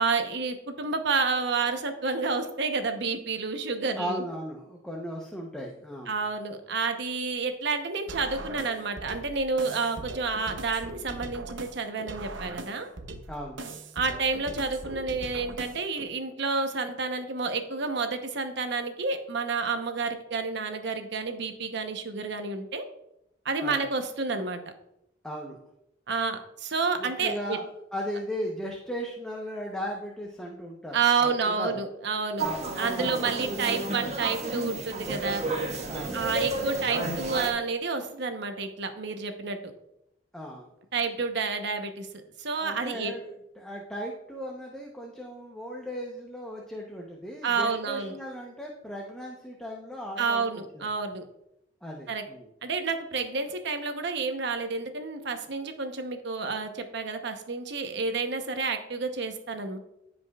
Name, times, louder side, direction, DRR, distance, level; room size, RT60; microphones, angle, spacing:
voice 1, 0.0-4.2 6.1-12.9 13.9-22.8 23.4-24.6 26.1-27.6 30.9-32.5 32.8-35.4 36.1-39.7 40.9-42.1 42.4-43.1 47.4-48.2 50.2-51.2 52.1-52.2 52.6-59.8, right 4 dB, 65° right, 6 dB, 0.9 m, -29 dB
voice 2, 4.0-6.1 13.3-13.7 23.6-23.8 25.2-25.6 27.0-31.8 32.4-33.3 35.9-36.2 40.3-40.7 42.6-43.2 43.6-50.4 50.7-50.9 51.8-52.5, equal, 5° left, -1 dB, 0.8 m, -37 dB
sound 1, 8.1-16.1, right 2 dB, 90° right, 0.8 m, -40 dB
sound 2, 32.4-37.5, right 2 dB, 35° right, 1.5 m, -32 dB
15.5 x 5.2 x 2.4 m, 0.82 s
head